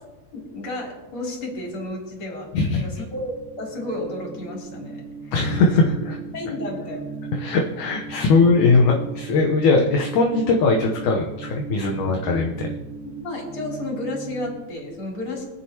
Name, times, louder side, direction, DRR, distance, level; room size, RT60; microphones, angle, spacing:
voice 1, 0.3-5.3 6.3-7.2 13.0-15.4, left 1 dB, 35° left, -2 dB, 3.6 m, -32 dB
voice 2, 2.5-2.9 5.3-6.0 7.3-12.7, left 3 dB, 70° left, 0 dB, 2.2 m, -20 dB
sound 1, 3.0-14.6, right 4 dB, 80° right, 2.5 m, -37 dB
24.0 x 8.3 x 2.9 m, 1.1 s
omnidirectional pair, 4.2 m